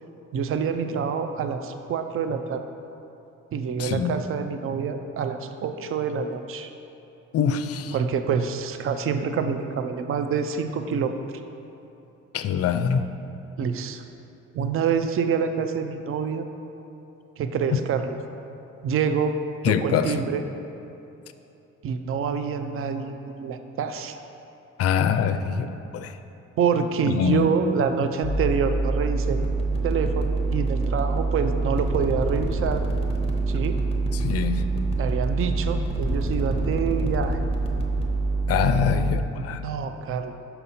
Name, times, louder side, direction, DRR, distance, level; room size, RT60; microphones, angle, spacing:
voice 1, 0.3-2.6 3.5-6.7 7.9-11.2 13.6-14.0 14.5-16.4 17.4-18.2 18.8-19.3 19.6-20.4 21.8-24.2 26.6-29.4 29.8-32.8 33.5-33.8 35.0-37.4 39.3-40.3, right 6 dB, 45° right, 8 dB, 0.5 m, -26 dB
voice 2, 3.8-4.2 7.3-7.9 12.3-13.1 17.7-17.8 19.6-20.1 24.8-25.7 25.9-26.1 27.1-27.5 34.1-34.6 38.5-39.6, left 7 dB, 55° left, 9 dB, 0.4 m, -24 dB
sound 1, 28.2-39.1, right 3 dB, 20° left, 0.8 m, -25 dB
5.6 x 5.5 x 4.2 m, 3.0 s
cardioid pair, 90°, 30 cm